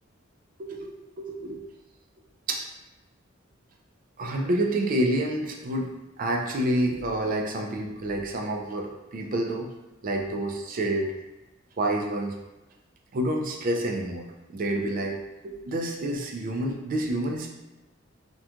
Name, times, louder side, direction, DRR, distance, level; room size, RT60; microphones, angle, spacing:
voice 1, 0.6-1.6 2.5-2.6 4.2-9.7 10.0-11.2 11.8-12.4 13.1-17.5, right 1 dB, 45° right, 2 dB, 0.4 m, -28 dB
2.8 x 2.2 x 2.4 m, 1.0 s
head